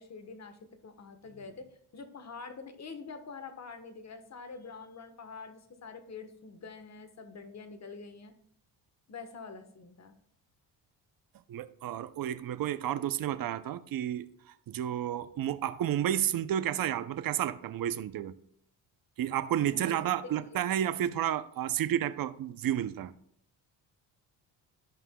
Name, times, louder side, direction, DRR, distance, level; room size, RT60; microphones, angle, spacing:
voice 1, 0.0-8.3 9.1-10.1 19.7-20.0 20.2-20.6, left 4 dB, 40° left, 1.2 m, -46 dB
voice 2, 11.5-18.3 19.2-23.1, right 11 dB, 50° right, 0.6 m, -31 dB
13.5 x 5.5 x 2.3 m
cardioid pair, 80°, 43 cm